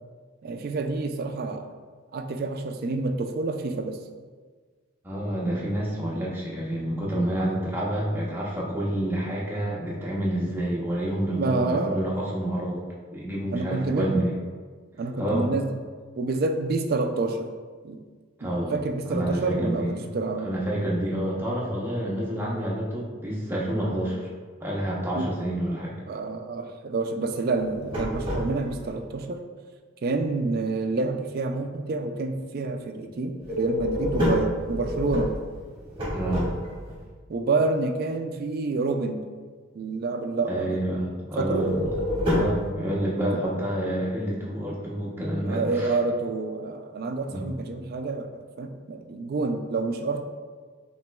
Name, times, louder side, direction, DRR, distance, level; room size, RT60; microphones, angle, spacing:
voice 1, 0.4-1.7 2.1-4.0 11.4-12.0 13.5-14.2 15.0-15.7 16.2-17.5 17.8-18.0 18.4-20.5 25.2-25.3 26.1-29.4 30.0-35.4 37.3-39.2 39.7-40.8 41.4-41.8 43.3-43.4 45.5-50.2, right 3 dB, 50° right, 6 dB, 0.3 m, -28 dB
voice 2, 5.0-12.8 13.1-14.3 15.2-15.5 18.4-18.8 19.1-20.1 20.4-24.3 24.6-25.9 36.1-36.5 40.5-41.9 42.3-45.9 47.3-47.5, right 1 dB, 10° right, -5 dB, 0.8 m, -28 dB
sound 1, 27.6-28.9 33.4-37.0 41.5-42.7, left 1 dB, 25° right, 1.3 m, -28 dB
5.8 x 3.0 x 2.3 m, 1.5 s
head